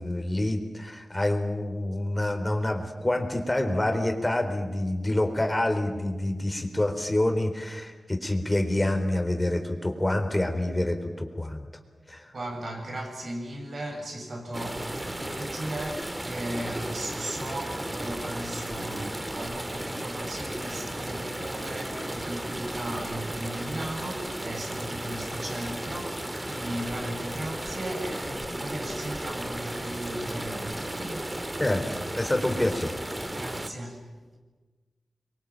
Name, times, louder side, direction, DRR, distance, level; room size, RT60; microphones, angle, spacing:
voice 1, 0.0-11.7 12.1-12.3 31.6-32.9, left 1 dB, 20° left, 4.1 m, -27 dB
voice 2, 12.3-31.4 33.3-34.1, right 1 dB, 65° right, 7.5 m, -36 dB
sound 1, 14.5-33.7, right 1 dB, 20° right, 2.2 m, -35 dB
26.0 x 23.5 x 9.0 m
cardioid pair, 50°, 0 cm